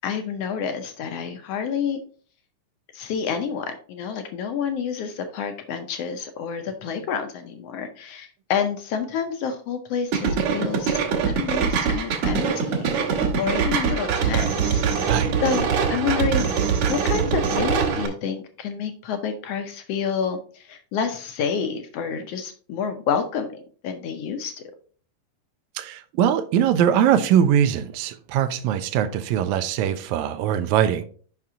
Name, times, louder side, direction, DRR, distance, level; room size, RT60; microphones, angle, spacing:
voice 1, 0.0-2.0 2.9-15.1 15.4-16.5 16.9-24.5, left 6 dB, 75° left, 1.5 m, -29 dB
sound 1, 10.1-18.1, right 6 dB, 65° right, 2.3 m, -23 dB
voice 2, 15.1-15.4 25.8-31.1, right 9 dB, 80° right, 1.9 m, -21 dB
5.9 x 5.8 x 3.6 m
omnidirectional pair, 3.5 m